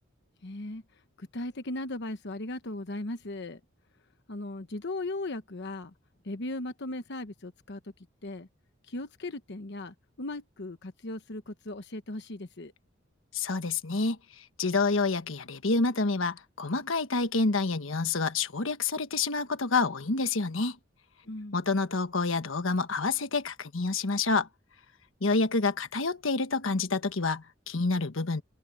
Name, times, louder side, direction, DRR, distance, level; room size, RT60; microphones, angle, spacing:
voice 1, 0.4-0.8 1.2-3.6 4.3-5.9 6.2-7.9 8.2-8.5 8.9-12.7 21.2-21.7, left 2 dB, 60° left, 1.1 m, -37 dB
voice 2, 13.3-20.8 21.5-24.5 25.2-28.4, left 3 dB, 80° left, 1.3 m, -28 dB
head